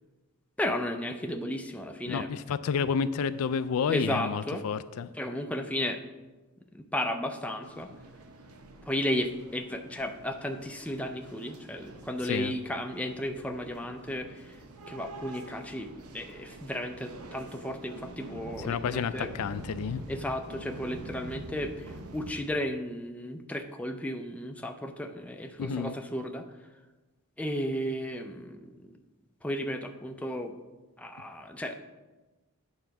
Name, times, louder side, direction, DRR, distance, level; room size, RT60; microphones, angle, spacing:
voice 1, 0.6-2.3 3.9-4.6 5.2-6.0 6.7-7.9 8.9-14.6 14.9-15.9 16.1-19.3 20.1-26.5 27.4-28.9 29.4-30.5 31.0-31.7, left 1 dB, 5° left, 5 dB, 0.4 m, -34 dB
voice 2, 2.1-5.1 12.2-12.6 18.6-20.0 25.6-25.9, left 6 dB, 80° left, 13 dB, 0.4 m, -30 dB
sound 1, 7.6-22.3, right 2 dB, 85° right, 0.8 m, -46 dB
8.9 x 3.8 x 5.9 m, 1.2 s
head